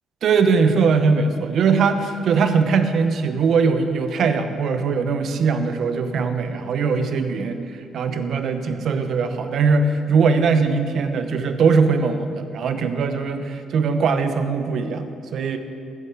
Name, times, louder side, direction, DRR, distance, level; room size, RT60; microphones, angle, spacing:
voice 1, 0.2-15.6, right 5 dB, 65° right, 8 dB, 0.9 m, -21 dB
10.5 x 6.5 x 8.0 m, 2.4 s
cardioid pair, 90°, 0 cm